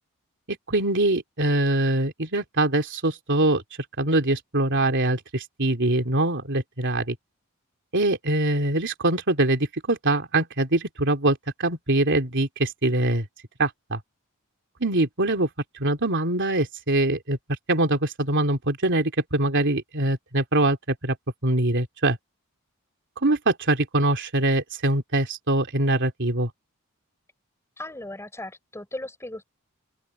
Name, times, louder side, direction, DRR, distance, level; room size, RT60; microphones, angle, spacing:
voice 1, 0.7-3.6 4.0-7.1 7.9-13.2 13.6-14.0 14.8-15.5 15.8-17.4 17.7-21.1 21.4-22.2 23.2-26.5, right 2 dB, 55° right, 3.4 m, -23 dB
voice 2, 27.8-29.4, left 1 dB, 15° left, 5.0 m, -37 dB
open air
head